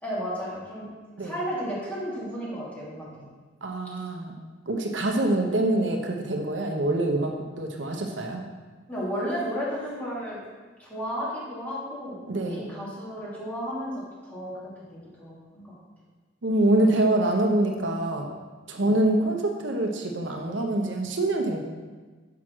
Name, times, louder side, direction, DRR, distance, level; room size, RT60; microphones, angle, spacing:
voice 1, 0.0-0.9 1.2-3.3 8.9-10.4 10.8-13.9 14.2-15.7 18.8-18.9, equal, 10° left, -9 dB, 2.9 m, -33 dB
voice 2, 3.6-4.3 4.7-8.4 12.3-12.7 16.4-18.3 18.7-21.6, right 1 dB, 75° right, 2 dB, 0.9 m, -25 dB
6.2 x 5.9 x 6.1 m, 1.4 s
head